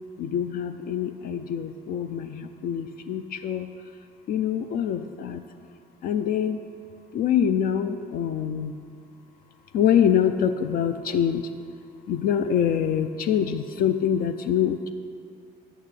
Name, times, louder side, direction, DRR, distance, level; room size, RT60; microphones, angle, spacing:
voice 1, 0.2-3.7 4.3-5.4 6.0-6.6 7.1-8.7 9.7-11.5 12.1-14.9, left 8 dB, 60° left, 9 dB, 0.4 m, -25 dB
9.0 x 8.7 x 3.2 m, 2.3 s
cardioid pair, 110°, 17 cm